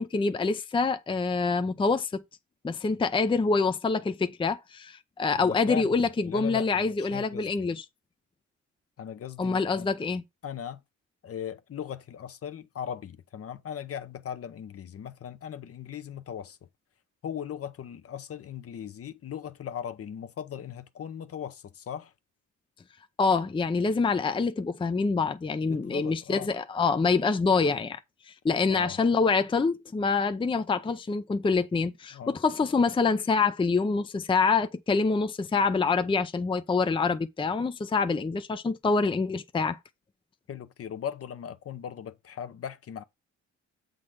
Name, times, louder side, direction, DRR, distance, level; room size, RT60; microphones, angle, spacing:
voice 1, 0.0-2.2 2.6-7.8 9.4-10.2 23.2-28.0 28.3-39.8, left 4 dB, 15° left, 0.6 m, -26 dB
voice 2, 5.4-7.7 9.0-9.9 10.4-10.8 11.2-16.6 17.2-22.1 25.6-26.5 28.7-29.0 32.1-32.4 40.5-43.0, left 8 dB, 50° left, 0.8 m, -38 dB
7.5 x 3.8 x 6.4 m
cardioid pair, 90°, 30 cm